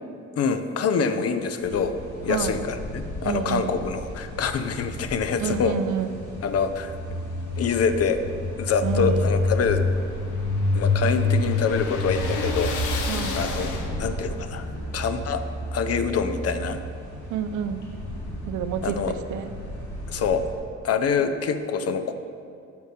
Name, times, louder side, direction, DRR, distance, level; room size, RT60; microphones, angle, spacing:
voice 1, 0.4-5.8 6.4-7.0 7.6-8.2 8.6-9.8 10.7-12.7 13.3-13.7 14.0-14.6 14.9-15.4 15.7-16.8 18.8-19.2 20.1-20.4 20.8-22.1, left 6 dB, 55° left, 10 dB, 0.6 m, -25 dB
sound 1, 1.6-20.5, left 2 dB, 70° left, 2.1 m, -30 dB
voice 2, 2.3-2.6 3.2-3.7 5.4-6.2 8.8-9.3 13.1-13.4 17.3-17.9 18.5-19.5, right 8 dB, 75° right, 9 dB, 0.6 m, -29 dB
sound 2, 8.8-14.3, left 4 dB, 85° left, 0.9 m, -35 dB
6.9 x 5.4 x 6.6 m, 2.5 s
cardioid pair, 90°, 30 cm